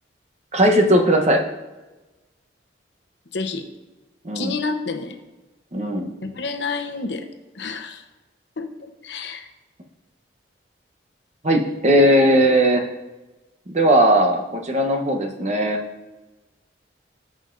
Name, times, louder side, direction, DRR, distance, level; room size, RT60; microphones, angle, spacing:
voice 1, 0.5-1.4 4.2-4.5 5.7-6.1 11.4-12.8 13.7-15.8, right 1 dB, 35° right, 3 dB, 0.9 m, -18 dB
voice 2, 3.3-3.6 4.3-5.2 6.2-7.2 7.5-8.0 8.6-9.5, left 4 dB, 65° left, 5 dB, 0.8 m, -29 dB
14.5 x 5.3 x 2.6 m, 1.1 s
head